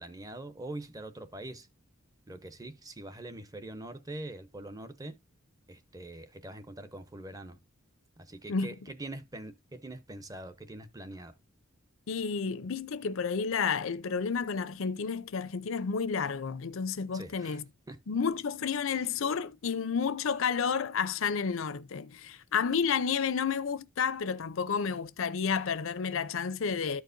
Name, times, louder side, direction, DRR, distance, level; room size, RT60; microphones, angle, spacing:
voice 1, 0.0-1.7 2.3-5.1 5.7-7.6 8.2-11.3 17.1-17.6 17.9-18.0, right 1 dB, 15° right, 0.7 m, -43 dB
voice 2, 12.1-17.6 18.1-27.0, left 6 dB, 70° left, 0.5 m, -31 dB
13.5 x 4.6 x 2.6 m
head